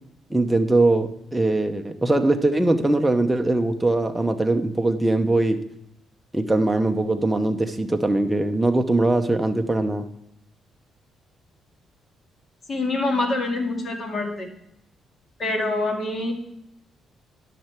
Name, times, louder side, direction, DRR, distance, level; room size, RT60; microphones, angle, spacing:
voice 1, 0.3-5.6 6.3-10.1, right 2 dB, 10° right, 5 dB, 0.8 m, -21 dB
voice 2, 12.7-14.5 15.4-16.3, left 2 dB, 40° left, 2 dB, 2.1 m, -25 dB
11.5 x 6.6 x 4.5 m, 0.78 s
cardioid pair, 90°, 0 cm